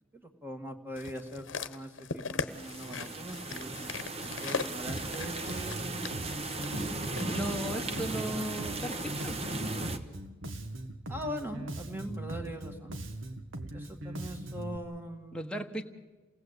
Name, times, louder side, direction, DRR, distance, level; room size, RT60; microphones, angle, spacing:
voice 1, 0.1-4.0 4.2-6.2 11.1-13.0 13.7-15.4, equal, 10° right, 5 dB, 2.0 m, -41 dB
sound 1, 1.0-7.3 8.1-8.2, left 4 dB, 65° left, 1.0 m, -39 dB
sound 2, 2.5-10.0, right 2 dB, 30° right, 1.2 m, -37 dB
Bass guitar, 4.9-14.8, right 1 dB, 70° right, 1.7 m, -40 dB
voice 2, 7.3-9.4 15.3-15.8, right 1 dB, 5° left, 3 dB, 1.2 m, -36 dB
28.5 x 18.0 x 8.3 m, 1.3 s
head